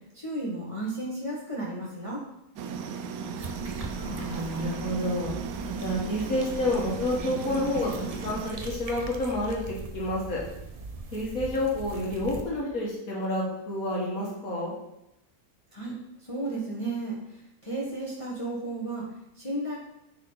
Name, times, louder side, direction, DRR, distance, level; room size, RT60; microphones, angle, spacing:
voice 1, 0.1-2.2 15.7-19.8, right 2 dB, 25° left, -5 dB, 1.3 m, -34 dB
sound 1, 2.6-8.5, right 5 dB, 80° right, 1.1 m, -36 dB
sound 2, 3.4-12.4, right 3 dB, 45° right, 0.4 m, -40 dB
voice 2, 4.0-5.3 5.7-10.4 11.1-14.7, left 1 dB, 70° left, -4 dB, 1.9 m, -29 dB
9.5 x 4.1 x 3.9 m, 0.87 s
omnidirectional pair, 1.6 m